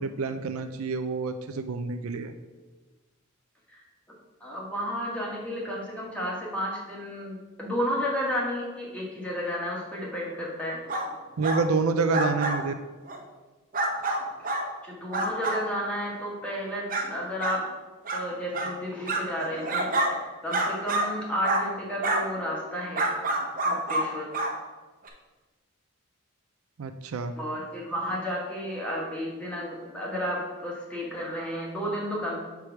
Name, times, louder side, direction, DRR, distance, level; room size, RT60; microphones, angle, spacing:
voice 1, 0.0-2.3 11.4-12.7 26.8-27.3, right 4 dB, 70° right, 8 dB, 0.4 m, -28 dB
voice 2, 4.4-10.8 14.4-14.5 14.8-17.7 18.1-23.1 23.6-24.3 27.4-32.4, equal, 5° left, -4 dB, 1.6 m, -32 dB
sound 1, 10.9-11.1 11.4-11.6 12.1-12.6 13.1-13.2 13.7-14.6 15.1-15.6 16.2-16.3 16.9-17.0 17.4-17.6 18.0-18.2 18.5-18.7 19.1-20.1 20.5-21.1 21.4-21.6 22.0-22.2 22.9-24.1 24.3-24.5 25.0-25.1, right 2 dB, 40° right, 0.9 m, -27 dB
4.8 x 4.7 x 5.8 m, 1.2 s
head